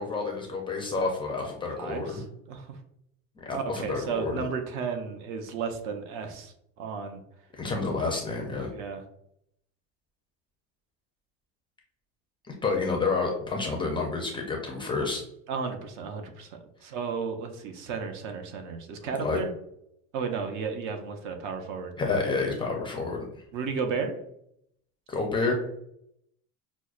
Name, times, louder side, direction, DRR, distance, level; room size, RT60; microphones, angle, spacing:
voice 1, 0.0-2.2 3.4-4.5 7.6-8.7 12.5-15.2 19.2-19.4 22.0-23.3 25.1-25.5, left 4 dB, 15° left, 1 dB, 0.4 m, -29 dB
voice 2, 1.8-2.8 3.5-6.5 6.8-7.2 8.7-9.0 15.5-19.5 20.1-21.9 23.5-24.1, right 5 dB, 55° right, 6 dB, 0.7 m, -33 dB
6.0 x 2.1 x 2.4 m, 0.75 s
cardioid pair, 145°, 34 cm